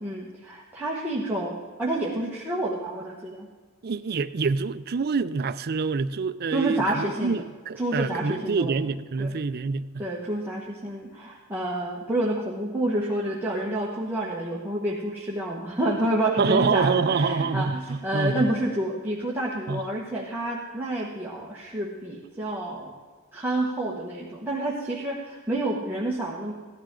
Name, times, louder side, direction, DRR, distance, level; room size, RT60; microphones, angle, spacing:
voice 1, 0.0-3.5 6.5-7.4 7.8-8.8 9.2-9.3 10.0-22.9 23.3-26.5, right 1 dB, 10° right, -5 dB, 1.4 m, -29 dB
voice 2, 3.8-10.1 16.4-18.5 19.7-19.8, right 4 dB, 45° right, 13 dB, 0.5 m, -26 dB
16.0 x 12.0 x 3.8 m, 1.4 s
head